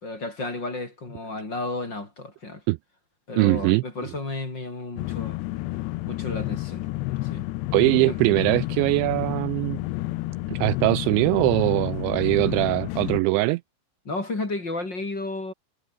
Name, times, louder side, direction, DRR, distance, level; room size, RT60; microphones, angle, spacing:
voice 1, 0.0-2.6 3.3-5.4 6.1-6.9 7.2-7.5 8.1-8.2 14.0-15.5, left 2 dB, 25° left, 4.4 m, -32 dB
voice 2, 3.4-3.8 7.7-9.8 10.5-13.6, right 22 dB, 90° right, 2.6 m, -21 dB
sound 1, 5.0-13.2, left 19 dB, 80° left, 2.5 m, -30 dB
omnidirectional pair, 5.8 m